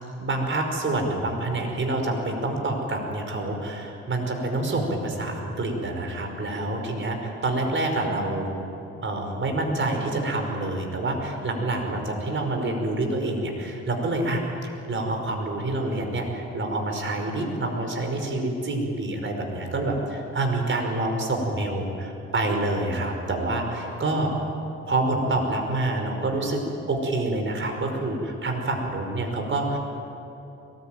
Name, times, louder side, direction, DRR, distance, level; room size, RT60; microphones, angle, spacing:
voice 1, 0.2-8.5 9.0-24.3 24.9-26.6 26.9-29.8, right 2 dB, 40° right, 3 dB, 5.3 m, -27 dB
22.5 x 20.0 x 9.2 m, 2.9 s
cardioid pair, 90°, 30 cm